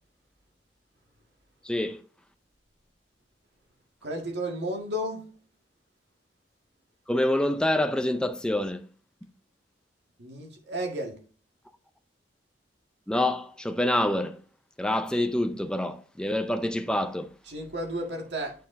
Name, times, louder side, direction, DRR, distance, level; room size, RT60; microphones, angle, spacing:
voice 1, 1.6-2.0 7.1-8.8 13.1-14.4 14.8-17.3, left 1 dB, 5° left, 0.4 m, -26 dB
voice 2, 4.0-5.3 10.2-11.2 17.4-18.5, equal, 75° right, 1.7 m, -33 dB
9.3 x 4.7 x 2.6 m
head